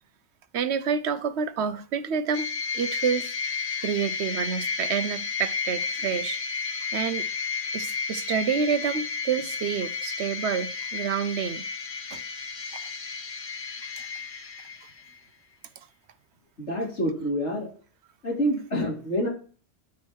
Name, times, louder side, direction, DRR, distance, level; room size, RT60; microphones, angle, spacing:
voice 1, 0.5-2.5 2.7-7.3 7.7-11.6 12.1-12.2 12.7-12.9, right 7 dB, 70° right, 1.0 m, -28 dB
sound 1, 2.3-15.2, left 5 dB, 35° left, 0.7 m, -32 dB
voice 2, 16.6-17.7 18.2-19.3, equal, 85° left, 3.5 m, -27 dB
10.5 x 4.9 x 4.5 m
omnidirectional pair, 1.2 m